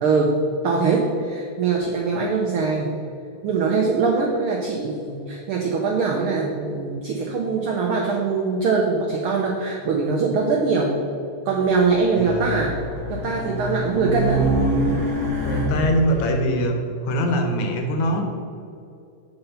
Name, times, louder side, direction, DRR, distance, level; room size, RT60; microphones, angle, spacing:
voice 1, 0.0-2.9 3.4-11.0 11.4-12.7 13.1-14.4, right 4 dB, 80° right, -1 dB, 1.2 m, -22 dB
Race car auto racing, 11.9-16.2, right 1 dB, 40° right, 1.0 m, -25 dB
voice 2, 12.1-12.6 15.4-16.8 17.0-18.2, equal, 80° left, 3 dB, 2.2 m, -23 dB
7.9 x 4.3 x 5.5 m, 2.6 s
omnidirectional pair, 3.3 m